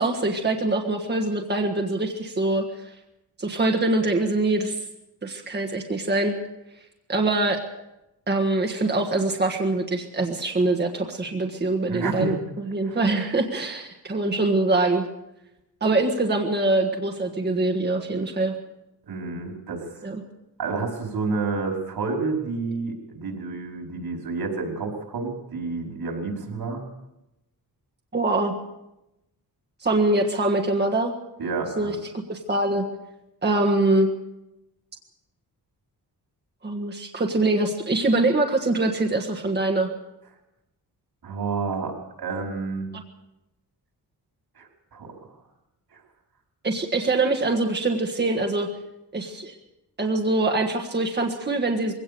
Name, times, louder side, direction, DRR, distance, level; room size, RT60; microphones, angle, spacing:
voice 1, 0.0-2.9 3.4-4.8 5.2-6.3 7.1-7.6 8.3-15.1 15.8-18.5 20.0-20.2 28.1-28.5 29.8-31.1 31.8-32.8 33.4-34.1 36.6-39.9 42.9-43.0 46.6-48.7 49.1-49.5 50.0-51.9, right 2 dB, 25° right, 2 dB, 1.5 m, -24 dB
voice 2, 11.9-12.4 12.8-13.0 19.0-20.1 20.6-26.8 31.4-32.0 41.2-42.9 44.6-45.1 45.9-46.0, right 4 dB, 70° right, 2 dB, 5.1 m, -29 dB
22.0 x 17.0 x 6.9 m, 0.91 s
wide cardioid pair, 150°, 39 cm